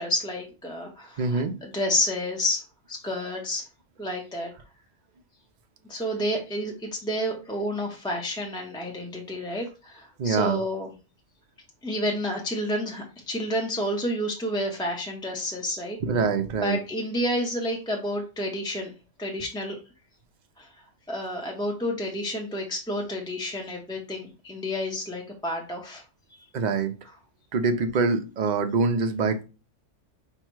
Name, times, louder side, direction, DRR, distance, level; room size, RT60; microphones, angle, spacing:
voice 1, 0.0-2.6 2.9-3.6 4.0-4.5 5.9-10.9 11.8-16.0 16.6-18.9 19.2-19.8 20.6-20.7 21.1-26.0, left 1 dB, 5° left, 0 dB, 0.6 m, -30 dB
voice 2, 1.2-1.5 10.2-10.6 16.0-16.8 26.5-26.9 27.5-29.4, right 4 dB, 50° right, 7 dB, 0.5 m, -24 dB
5.5 x 2.1 x 4.5 m, 0.31 s
omnidirectional pair, 1.3 m